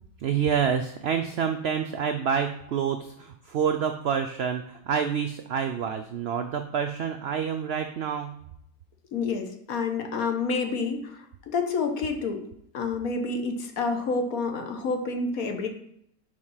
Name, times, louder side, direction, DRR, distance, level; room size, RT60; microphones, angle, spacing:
voice 1, 0.2-8.4, right 7 dB, 75° right, 7 dB, 0.5 m, -28 dB
voice 2, 9.1-12.4 12.7-15.7, left 4 dB, 70° left, 5 dB, 1.4 m, -28 dB
5.0 x 4.8 x 5.6 m, 0.72 s
omnidirectional pair, 1.6 m